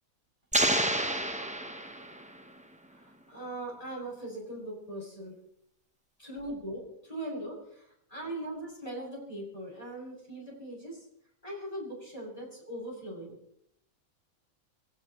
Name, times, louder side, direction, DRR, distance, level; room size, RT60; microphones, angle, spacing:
sound 1, 0.5-2.4, right 1 dB, 5° right, 0.6 m, -29 dB
voice 1, 2.9-5.4 6.2-11.0 11.4-13.4, right 1 dB, 25° left, -4 dB, 7.3 m, -40 dB
23.0 x 17.0 x 3.1 m, 0.73 s
omnidirectional pair, 1.5 m